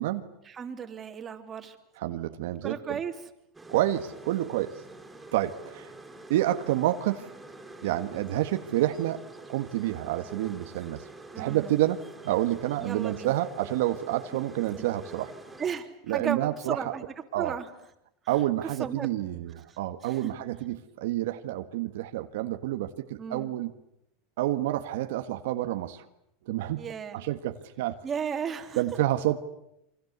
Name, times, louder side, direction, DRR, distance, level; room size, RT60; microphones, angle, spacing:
voice 1, 0.4-1.8 2.6-3.1 11.3-11.7 12.8-13.3 14.7-14.9 15.6-17.0 17.4-17.7 18.6-19.2 19.7-20.3 23.2-23.5 26.8-27.2 28.0-28.8, right 7 dB, 25° right, 5 dB, 3.2 m, -35 dB
voice 2, 2.0-3.0 3.7-4.8 5.3-5.9 6.3-7.3 7.8-9.2 9.5-11.1 11.3-15.3 16.1-16.8 17.3-17.6 18.3-23.7 24.4-26.0 26.4-26.8 27.1-28.0 28.8-29.4, right 14 dB, 80° right, 7 dB, 1.7 m, -29 dB
sound 1, 3.5-15.7, right 2 dB, 10° right, 5.2 m, -47 dB
28.5 x 25.0 x 8.2 m, 0.80 s
supercardioid pair, 135°, 0 cm